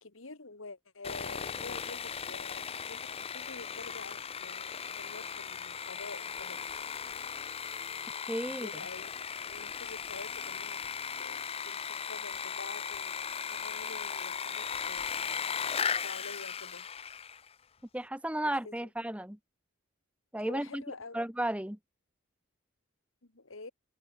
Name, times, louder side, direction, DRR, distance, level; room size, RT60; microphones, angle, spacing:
voice 1, 0.0-6.6 8.4-9.1 9.4-10.8 11.2-13.2 13.5-15.1 15.9-16.9 18.4-18.7 20.4-21.2 23.2-23.7, left 3 dB, 65° left, 1.8 m, -47 dB
Sawing, 1.0-17.5, left 7 dB, 30° left, 0.6 m, -37 dB
voice 2, 8.3-8.7 17.9-19.4 20.3-20.8 21.1-21.8, right 1 dB, 5° right, 1.1 m, -33 dB
head